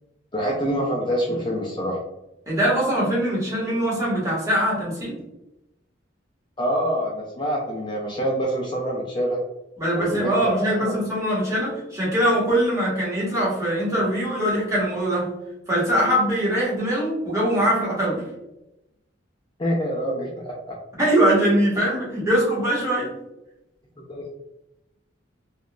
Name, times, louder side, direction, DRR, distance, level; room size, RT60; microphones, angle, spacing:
voice 1, 0.3-2.0 6.6-9.4 10.0-11.0 19.6-20.8 24.1-24.3, equal, 25° left, -3 dB, 0.5 m, -26 dB
voice 2, 2.5-5.1 9.8-15.3 15.7-18.2 21.0-23.1, right 1 dB, 15° right, -7 dB, 1.2 m, -22 dB
3.5 x 2.3 x 2.4 m, 0.92 s
head